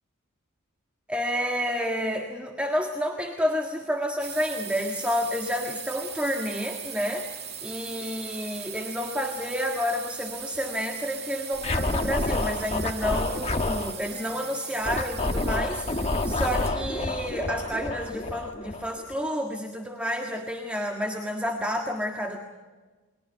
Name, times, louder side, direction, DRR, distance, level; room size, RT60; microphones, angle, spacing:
voice 1, 1.1-15.9 16.2-22.4, equal, 5° right, 2 dB, 1.6 m, -30 dB
sound 1, 4.2-16.9, right 7 dB, 50° right, 2.4 m, -39 dB
Scratching (performance technique), 11.6-13.9 14.8-19.2, left 2 dB, 30° left, 1.4 m, -28 dB
29.5 x 22.5 x 5.6 m, 1.3 s
head